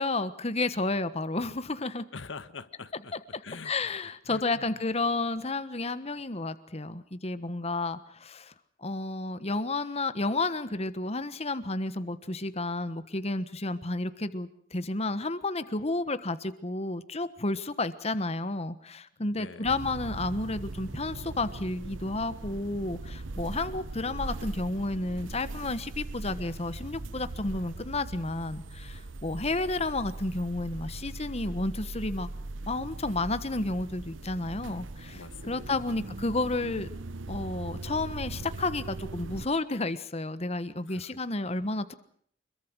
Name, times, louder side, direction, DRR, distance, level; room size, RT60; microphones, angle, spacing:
voice 1, 0.0-2.0 3.1-8.5 8.8-32.3 32.6-36.9 37.3-41.9, left 2 dB, 35° left, 12 dB, 1.3 m, -31 dB
voice 2, 2.1-3.1 3.4-3.7 4.3-4.7 19.2-19.8 35.1-36.0 40.9-41.2, left 4 dB, 80° left, 13 dB, 1.3 m, -45 dB
sound 1, 19.6-39.5, right 2 dB, 90° right, 0.9 m, -40 dB
25.5 x 22.5 x 6.3 m, 0.62 s
head